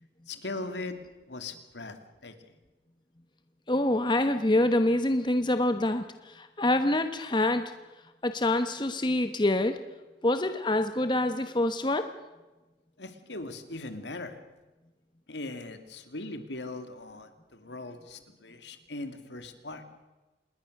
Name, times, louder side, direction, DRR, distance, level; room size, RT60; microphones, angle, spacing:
voice 1, 0.3-1.0 1.3-2.4 13.0-14.4 15.3-19.8, left 2 dB, 70° left, 8 dB, 2.5 m, -39 dB
voice 2, 3.7-7.7 8.2-9.8 10.2-12.1, left 1 dB, 25° left, 8 dB, 1.1 m, -26 dB
27.0 x 21.0 x 6.6 m, 1.1 s
head